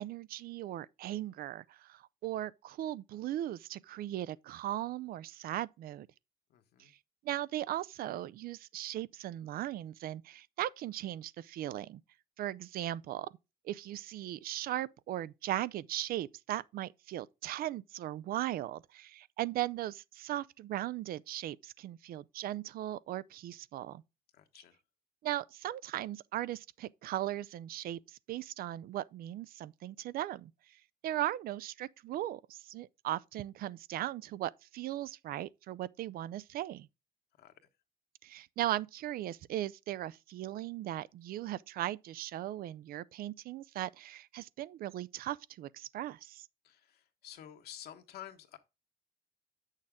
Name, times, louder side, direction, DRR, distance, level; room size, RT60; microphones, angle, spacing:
voice 1, 0.0-6.1 6.8-6.9 7.2-12.0 12.4-13.3 13.6-24.0 25.2-30.5 31.0-36.9 38.2-46.5, right 13 dB, 60° right, 0.4 m, -38 dB
voice 2, 6.5-6.9 24.3-24.8 37.4-37.5 46.6-48.6, left 11 dB, 70° left, 1.3 m, -50 dB
8.5 x 6.5 x 3.6 m
cardioid pair, 110°, 17 cm